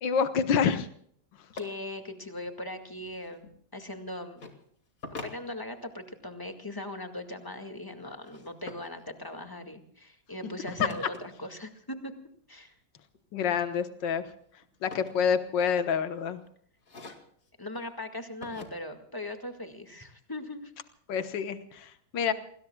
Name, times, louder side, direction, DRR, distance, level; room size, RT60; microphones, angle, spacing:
voice 1, 0.0-0.9 13.3-14.2 14.8-16.4 21.1-22.3, left 6 dB, 70° left, 9 dB, 1.9 m, -27 dB
sound 1, 1.5-1.6 3.0-3.5 4.4-4.6 5.0-6.0 8.2-8.9 10.7-11.2 13.1-13.5 13.9-15.8 16.2-16.4 16.8-17.5 18.4-18.7, left 4 dB, 45° left, 2.7 m, -43 dB
voice 2, 1.5-4.4 5.2-11.1 11.4-12.1 12.5-12.7 17.6-20.7, left 1 dB, 10° left, 5 dB, 1.8 m, -39 dB
28.5 x 21.0 x 2.3 m, 0.64 s
omnidirectional pair, 2.0 m